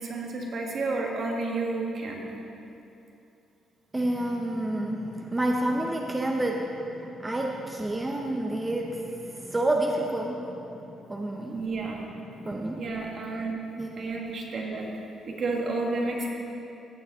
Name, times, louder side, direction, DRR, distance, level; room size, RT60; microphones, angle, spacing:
voice 1, 0.0-2.2 11.5-12.0 12.8-13.5 14.0-16.3, right 3 dB, 55° right, 0 dB, 1.5 m, -31 dB
voice 2, 3.9-11.7 12.0-13.0 13.8-14.0, right 1 dB, 15° right, 0 dB, 0.8 m, -30 dB
16.0 x 6.2 x 3.7 m, 2.8 s
cardioid pair, 90°, 0 cm